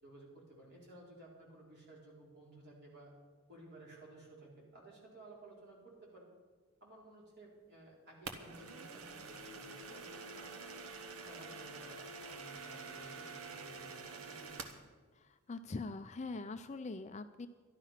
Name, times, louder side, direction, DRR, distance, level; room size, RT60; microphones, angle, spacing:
voice 1, 0.0-3.1 3.5-6.3 6.8-10.7 11.2-14.9, right 2 dB, 50° right, -3 dB, 4.0 m, -56 dB
sound 1, 8.3-14.9, right 4 dB, 90° right, 1.2 m, -47 dB
voice 2, 15.1-17.5, left 3 dB, 30° left, 9 dB, 0.4 m, -43 dB
12.0 x 11.5 x 5.8 m, 1.4 s
head